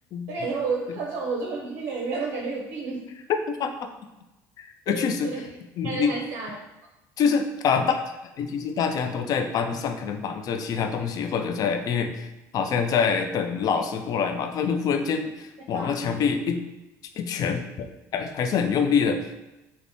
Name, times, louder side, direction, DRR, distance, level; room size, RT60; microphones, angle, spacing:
voice 1, 0.3-3.0 4.9-5.4 5.8-6.6 15.7-15.9, right 4 dB, 70° right, -1 dB, 0.5 m, -30 dB
voice 2, 3.3-3.7 4.6-5.4 5.8-6.1 7.2-8.0 8.4-12.3 12.5-16.6 17.2-17.9 18.1-19.3, left 6 dB, 50° left, 7 dB, 0.3 m, -25 dB
3.4 x 2.0 x 2.6 m, 1.0 s
supercardioid pair, 90°, 8 cm